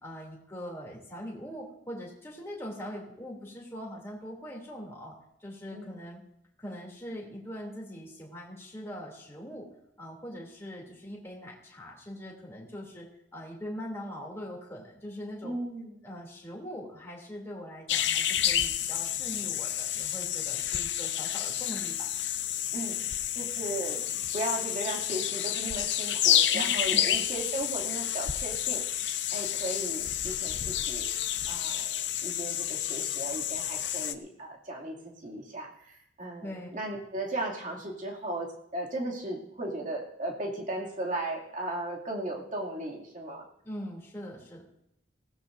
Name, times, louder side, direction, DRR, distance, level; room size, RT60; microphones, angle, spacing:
voice 1, 0.0-6.2 6.6-9.7 10.0-15.6 16.0-22.1 26.5-27.1 36.4-36.7 43.6-44.6, equal, 15° left, -3 dB, 3.0 m, -42 dB
voice 2, 15.4-16.0 22.7-23.1 23.4-24.0 24.3-31.1 31.5-43.4, right 1 dB, 40° right, -2 dB, 2.6 m, -36 dB
sound 1, 17.9-34.1, left 11 dB, 70° left, 0.7 m, -30 dB
20.5 x 16.5 x 2.7 m, 0.78 s
head